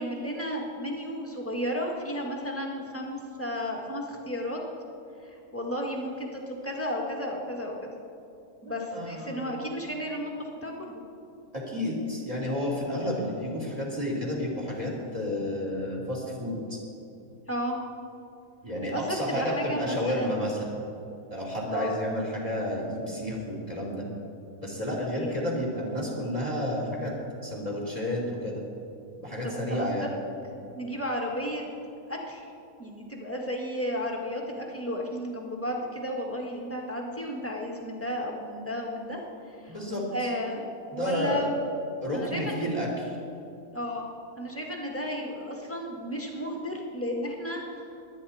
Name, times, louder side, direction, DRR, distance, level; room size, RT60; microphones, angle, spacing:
voice 1, 0.0-4.6 5.2-7.9 8.6-11.0 17.5-17.8 18.9-20.4 21.6-21.9 25.2-25.6 29.4-29.9 30.8-31.6 32.1-32.5 32.8-39.8 40.1-40.6 40.9-41.5 42.1-42.7 43.7-44.1 44.4-47.8, equal, 10° left, -1 dB, 1.7 m, -33 dB
voice 2, 8.9-9.5 11.5-16.8 18.6-20.7 21.3-24.1 24.6-27.1 27.4-28.6 29.2-30.1 39.7-40.3 40.9-41.5 42.0-43.1, left 1 dB, 25° right, -3 dB, 3.0 m, -31 dB
23.0 x 9.8 x 4.3 m, 2.7 s
omnidirectional pair, 1.6 m